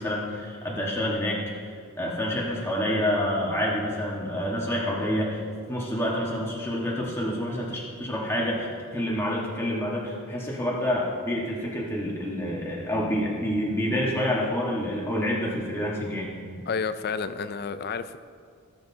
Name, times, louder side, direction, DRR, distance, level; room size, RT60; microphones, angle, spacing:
voice 1, 0.0-1.4 2.0-5.4 5.7-8.7 8.9-16.3, equal, 10° left, -5 dB, 1.4 m, -28 dB
voice 2, 16.7-18.2, left 5 dB, 45° left, 12 dB, 0.4 m, -30 dB
17.5 x 7.7 x 2.8 m, 2.1 s
head